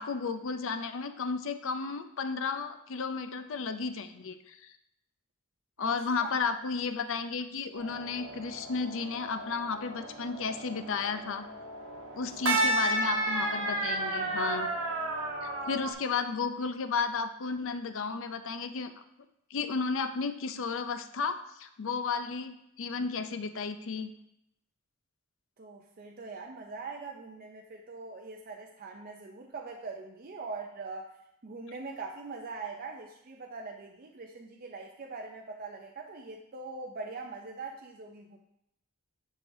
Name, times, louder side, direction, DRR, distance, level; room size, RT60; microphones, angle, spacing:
voice 1, 0.0-4.7 5.8-11.5 12.2-14.7 15.7-18.9 19.5-24.1, left 5 dB, 65° left, 10 dB, 0.5 m, -33 dB
voice 2, 5.8-6.4 12.1-12.8 25.6-31.1 31.4-38.4, right 4 dB, 40° right, 1 dB, 0.5 m, -42 dB
sound 1, 7.8-15.9, right 1 dB, 65° right, 1.1 m, -33 dB
9.7 x 4.8 x 2.7 m, 0.78 s
head